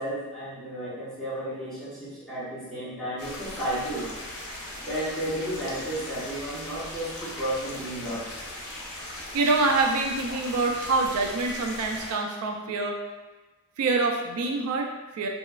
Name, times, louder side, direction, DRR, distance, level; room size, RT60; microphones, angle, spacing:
voice 1, 0.0-4.1 4.8-8.2, right 1 dB, ahead, -12 dB, 1.0 m, -33 dB
sound 1, 3.2-12.1, left 1 dB, 80° left, 0.6 m, -39 dB
voice 2, 9.3-13.0 13.8-15.3, right 3 dB, 80° right, 3 dB, 0.3 m, -26 dB
2.8 x 2.3 x 2.3 m, 1.2 s
head